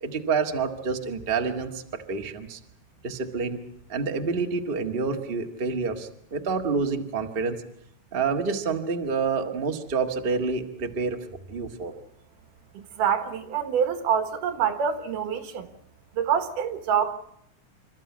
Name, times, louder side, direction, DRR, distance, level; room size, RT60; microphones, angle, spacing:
voice 1, 0.0-2.6 3.0-3.6 3.9-7.6 8.1-11.2 11.5-11.9, right 4 dB, 30° right, 1.0 m, -28 dB
voice 2, 12.7-15.7 16.1-17.1, right 8 dB, 85° right, 3.1 m, -26 dB
27.5 x 13.5 x 9.5 m
omnidirectional pair, 3.6 m